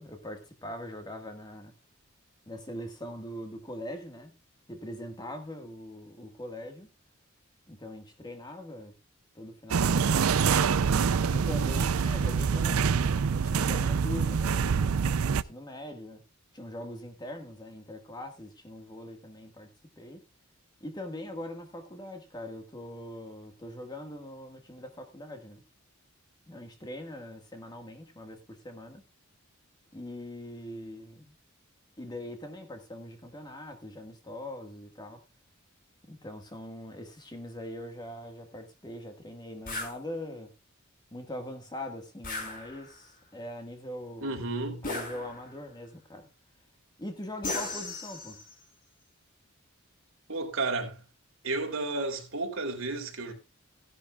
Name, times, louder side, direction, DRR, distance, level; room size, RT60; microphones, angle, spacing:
voice 1, 0.0-1.7 2.4-4.3 4.7-6.9 7.7-9.0 9.3-10.3 11.3-12.9 13.3-16.2 16.5-19.7 20.0-20.2 20.8-25.6 26.5-29.0 29.9-31.3 32.0-35.2 36.1-40.5 41.1-44.4 44.8-46.3 47.0-48.4, left 1 dB, 20° left, 1.7 m, -42 dB
sound 1, 9.7-15.4, right 6 dB, 80° right, 0.5 m, -25 dB
sound 2, 39.7-40.0 42.2-43.1 44.8-45.6 47.4-48.5, left 2 dB, 45° left, 5.0 m, -36 dB
voice 2, 44.2-44.9 50.3-51.0 51.4-53.3, right 3 dB, 65° right, 3.1 m, -32 dB
15.5 x 11.0 x 2.4 m
head